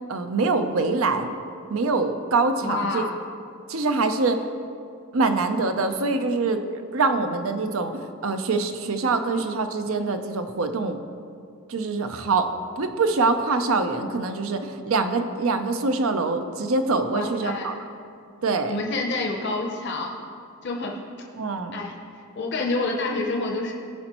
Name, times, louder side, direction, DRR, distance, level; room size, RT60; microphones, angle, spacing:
voice 1, 0.1-1.3 1.7-3.0 3.7-4.5 5.1-6.6 6.9-11.0 11.7-17.8 18.4-18.8 21.4-21.8, right 3 dB, 70° right, 8 dB, 0.6 m, -24 dB
voice 2, 2.6-3.2 17.1-17.8 18.7-20.2 20.6-21.0 21.7-23.7, left 2 dB, 50° left, 0 dB, 0.7 m, -28 dB
15.5 x 5.3 x 3.0 m, 2.4 s
head